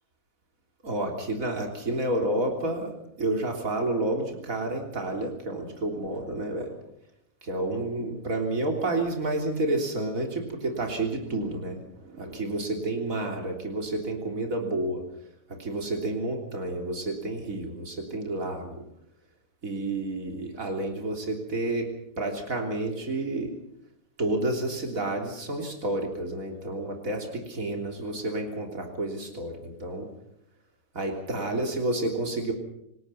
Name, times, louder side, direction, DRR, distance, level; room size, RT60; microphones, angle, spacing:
voice 1, 0.8-6.7 7.4-15.0 15.5-18.8 19.6-21.9 22.2-23.5 24.2-30.1 30.9-32.5, right 2 dB, 70° right, 2 dB, 3.8 m, -30 dB
28.0 x 19.0 x 5.7 m, 0.78 s
omnidirectional pair, 1.5 m